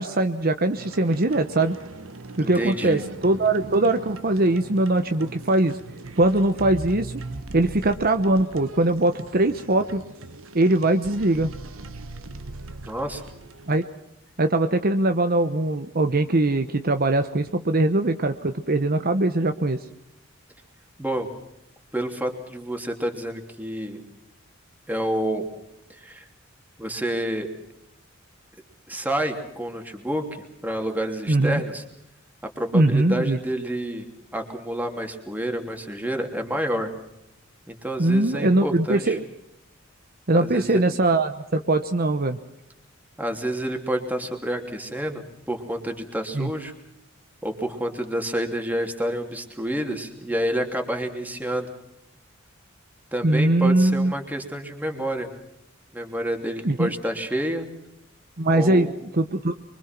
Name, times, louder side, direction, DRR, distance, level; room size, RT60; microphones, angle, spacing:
voice 1, 0.0-1.8 2.4-5.8 6.2-7.1 7.5-10.0 10.5-11.5 13.7-13.8 14.4-19.8 31.3-31.6 32.7-33.4 38.0-39.2 40.3-42.4 46.3-46.5 53.2-54.1 56.6-56.9 58.4-59.5, right 2 dB, 45° right, 7 dB, 1.0 m, -21 dB
sound 1, 0.7-13.9, right 2 dB, 80° right, 1.4 m, -40 dB
voice 2, 2.4-3.0 12.9-13.2 21.0-21.3 21.9-24.0 24.9-25.5 25.9-26.3 26.8-27.5 28.9-31.8 32.6-34.1 34.3-36.9 37.7-39.2 40.3-40.8 43.2-46.7 47.4-51.7 53.1-55.3 55.9-57.7 58.5-58.9, right 1 dB, 10° right, 3 dB, 3.0 m, -29 dB
25.0 x 24.5 x 6.0 m, 0.81 s
head